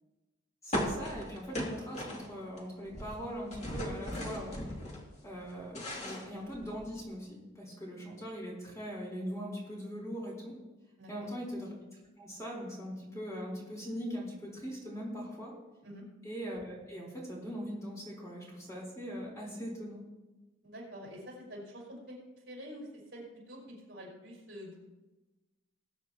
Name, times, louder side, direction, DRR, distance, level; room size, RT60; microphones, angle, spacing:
voice 1, 0.6-4.6 5.2-10.5 11.1-11.7 12.2-15.5 16.2-20.0, equal, 15° left, -4 dB, 4.3 m, -41 dB
sound 1, 0.7-2.6 2.9-5.0 5.4-7.0, equal, 35° left, 2.6 m, -37 dB
voice 2, 11.0-11.4 15.8-16.0 20.6-23.6 23.9-24.8, equal, 55° right, -3 dB, 5.1 m, -47 dB
20.5 x 9.4 x 3.0 m, 1.1 s
head